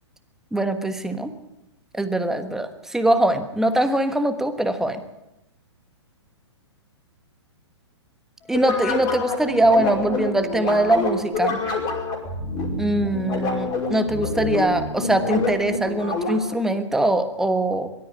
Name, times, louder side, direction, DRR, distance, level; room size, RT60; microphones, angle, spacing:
voice 1, 0.5-1.3 1.9-5.0 8.5-11.6 12.8-17.9, right 1 dB, 5° right, 9 dB, 1.3 m, -22 dB
sound 1, 8.5-16.6, left 3 dB, 25° left, 5.4 m, -27 dB
23.0 x 13.5 x 9.5 m, 0.93 s
figure-of-eight pair, 115°, 15 cm